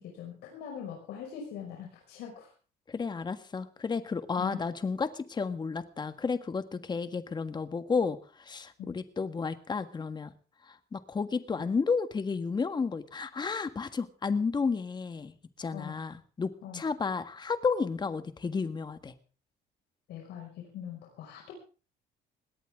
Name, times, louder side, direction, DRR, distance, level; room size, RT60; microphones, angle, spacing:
voice 1, 0.0-2.5 4.4-4.6 8.8-8.9 15.7-15.9 16.6-16.8 20.1-21.5, left 8 dB, 80° left, 0 dB, 5.5 m, -42 dB
voice 2, 2.9-10.3 10.7-15.3 15.6-19.1, left 5 dB, 25° left, 10 dB, 1.6 m, -32 dB
20.0 x 18.0 x 3.7 m, 0.37 s
cardioid pair, 110°, 17 cm